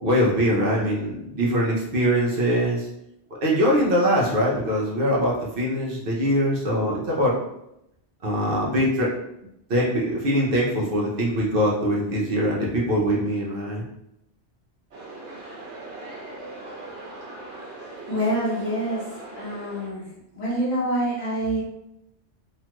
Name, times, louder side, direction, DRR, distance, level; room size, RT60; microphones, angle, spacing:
voice 1, 0.0-2.9 3.4-7.4 8.2-9.1 9.7-13.8, equal, 55° right, -4 dB, 0.8 m, -22 dB
sound 1, 14.9-19.9, right 2 dB, 85° right, 1.1 m, -40 dB
voice 2, 18.1-19.1 19.4-20.0 20.3-21.6, right 1 dB, 40° left, -7 dB, 1.0 m, -26 dB
2.9 x 2.3 x 2.9 m, 0.81 s
omnidirectional pair, 1.1 m